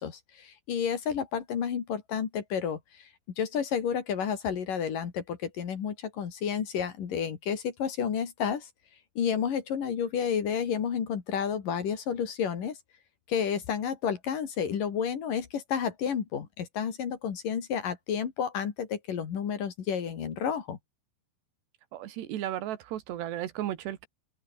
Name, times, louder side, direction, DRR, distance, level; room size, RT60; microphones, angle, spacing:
voice 1, 0.0-3.1 3.4-8.7 9.2-12.8 13.3-20.8, left 7 dB, 55° left, 3.9 m, -31 dB
voice 2, 21.9-24.1, right 12 dB, 80° right, 3.8 m, -34 dB
open air
omnidirectional pair, 4.9 m